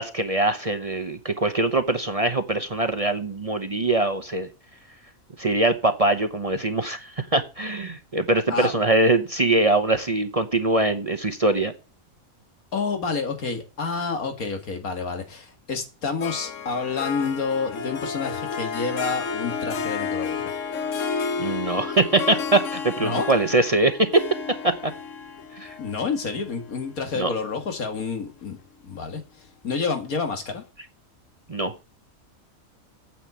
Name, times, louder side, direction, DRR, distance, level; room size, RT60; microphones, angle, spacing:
voice 1, 0.0-4.5 5.4-11.7 21.4-24.2 24.6-24.9 25.6-25.7 27.1-27.3 31.5-31.7, right 2 dB, 30° right, 0.8 m, -22 dB
voice 2, 12.7-20.5 23.0-23.3 25.8-28.6 28.8-29.2 29.6-30.6, left 4 dB, 90° left, 2.3 m, -29 dB
Harp, 16.2-27.6, left 6 dB, 65° left, 1.3 m, -31 dB
9.2 x 5.5 x 8.1 m
omnidirectional pair, 1.5 m